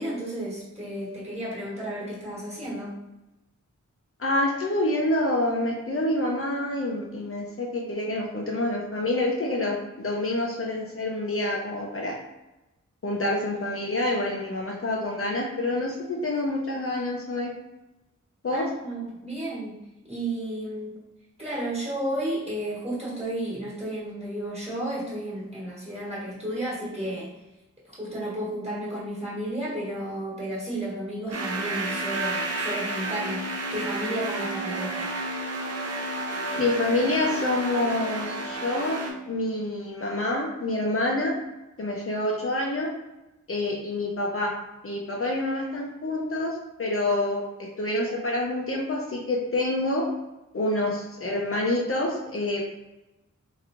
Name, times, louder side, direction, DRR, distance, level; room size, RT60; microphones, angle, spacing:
voice 1, 0.0-3.0 18.5-21.0 21.4-27.4 27.8-35.1, right 1 dB, 20° right, -7 dB, 1.3 m, -32 dB
voice 2, 4.2-12.2 13.0-17.5 18.4-18.7 36.6-41.3 41.8-42.9 43.5-44.5 44.8-50.1 50.5-52.6, left 1 dB, 45° left, -1 dB, 0.5 m, -27 dB
sound 1, 31.3-39.1, right 2 dB, 55° right, 0.6 m, -31 dB
3.1 x 3.0 x 2.5 m, 0.99 s
wide cardioid pair, 85°, 30 cm